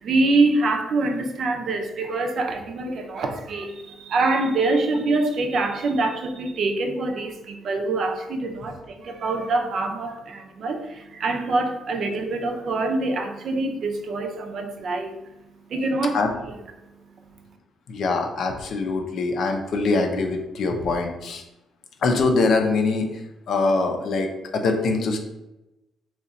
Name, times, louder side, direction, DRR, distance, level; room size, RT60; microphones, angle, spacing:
voice 1, 0.0-15.3 15.7-16.2 16.5-16.6, right 2 dB, 60° right, 4 dB, 0.5 m, -25 dB
voice 2, 17.9-21.4 22.0-23.1 23.5-24.3 24.5-25.2, left 3 dB, 65° left, 4 dB, 0.6 m, -23 dB
2.8 x 2.4 x 4.0 m, 0.94 s
cardioid pair, 90°, 0 cm